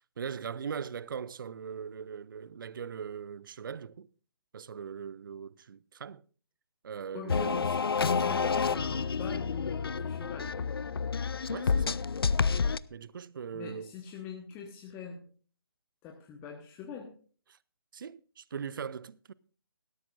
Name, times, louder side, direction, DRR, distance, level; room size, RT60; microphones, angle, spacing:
voice 1, 0.0-4.1 4.5-6.2 6.8-7.8 11.5-12.0 12.9-13.9 17.5-17.6 17.9-19.3, right 7 dB, 55° right, 0.4 m, -40 dB
voice 2, 7.1-10.8 13.5-15.2 16.0-17.1, left 5 dB, 15° left, 1.2 m, -42 dB
sound 1, 7.3-12.8, left 5 dB, 70° left, 0.5 m, -29 dB
18.0 x 12.5 x 2.5 m
figure-of-eight pair, 145°, 13 cm